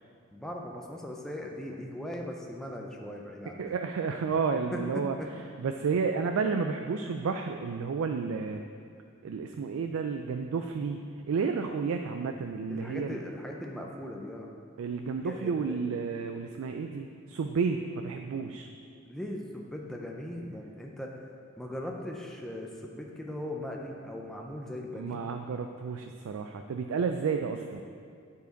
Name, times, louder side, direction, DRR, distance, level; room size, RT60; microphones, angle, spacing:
voice 1, 0.3-3.8 4.7-5.3 12.7-14.5 15.2-15.8 19.1-21.1 21.6-25.2, left 1 dB, ahead, 0 dB, 0.5 m, -39 dB
voice 2, 3.6-5.2 5.6-8.6 9.2-11.0 11.3-13.2 14.8-18.7 25.0-27.8, right 5 dB, 85° right, 6 dB, 0.4 m, -31 dB
9.7 x 4.7 x 4.5 m, 2.4 s
head